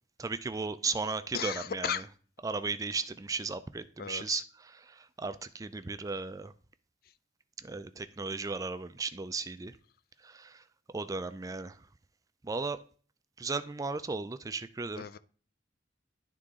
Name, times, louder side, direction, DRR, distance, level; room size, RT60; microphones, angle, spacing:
voice 1, 0.2-2.0 2.4-6.5 7.6-9.8 10.2-10.6 10.9-11.9 12.4-12.8 13.4-15.0, right 4 dB, 20° right, 0.4 m, -36 dB
voice 2, 1.3-2.1 4.0-4.4 15.0-15.2, left 8 dB, 60° left, 0.4 m, -35 dB
11.5 x 3.8 x 3.6 m
head